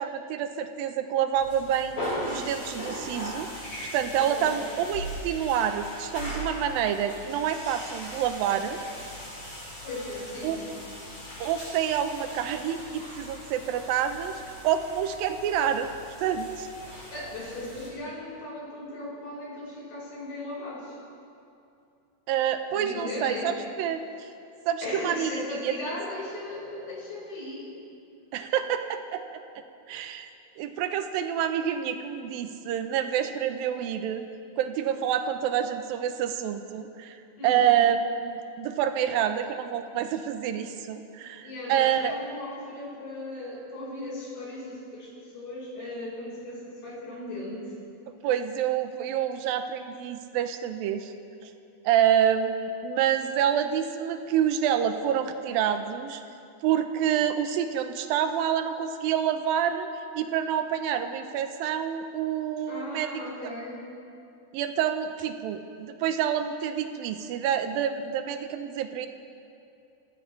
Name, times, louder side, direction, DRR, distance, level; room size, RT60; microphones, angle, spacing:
voice 1, 0.0-2.0 2.2-8.8 10.4-10.6 11.4-15.9 16.2-16.7 22.3-24.0 24.7-25.7 28.3-29.2 29.9-30.3 30.6-34.3 34.6-37.2 37.4-42.1 48.2-51.1 51.4-51.5 51.9-56.2 56.6-59.9 60.1-63.2 64.5-69.1, right 9 dB, 85° right, 7 dB, 2.6 m, -27 dB
sound 1, 1.3-17.9, equal, 40° left, 5.7 m, -39 dB
voice 2, 4.2-4.6 9.8-10.7 17.1-21.0 22.7-23.5 24.8-27.7 37.4-37.7 41.4-47.6 62.7-63.9, left 1 dB, 90° left, -5 dB, 6.3 m, -37 dB
27.0 x 15.0 x 3.3 m, 2.6 s
omnidirectional pair, 4.1 m